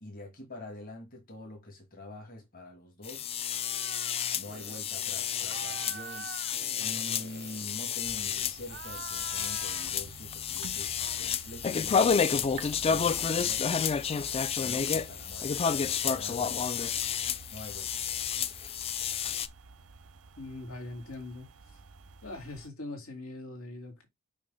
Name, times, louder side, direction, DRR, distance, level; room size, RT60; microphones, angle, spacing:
voice 1, 0.0-3.4 4.3-6.3 6.8-13.9 14.5-15.5 15.9-17.1 17.5-18.3, left 1 dB, 40° left, 2.0 m, -46 dB
sound 1, 3.0-19.5, left 7 dB, 25° left, 0.3 m, -30 dB
sound 2, 3.5-4.2 4.4-4.8 5.4-8.2 8.6-10.0 10.5-11.6 12.6-14.4, right 7 dB, 50° right, 0.4 m, -47 dB
sound 3, 8.0-22.7, right 4 dB, 85° right, 0.7 m, -50 dB
voice 2, 20.4-21.5 22.2-24.1, left 2 dB, 80° left, 2.4 m, -41 dB
6.3 x 2.7 x 5.6 m
head